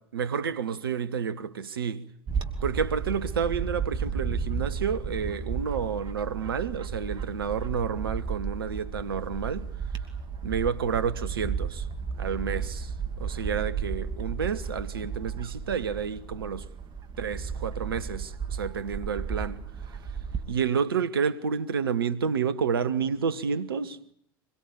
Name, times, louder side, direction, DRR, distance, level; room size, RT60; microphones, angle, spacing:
voice 1, 0.0-2.1 2.6-9.7 10.4-11.9 12.2-16.7 17.2-19.6 20.5-24.0, right 6 dB, 75° right, 1.3 m, -30 dB
Bird / Wind, 2.3-20.5, right 6 dB, 40° right, 2.7 m, -34 dB
25.5 x 22.5 x 8.5 m
figure-of-eight pair, 75°, 12 cm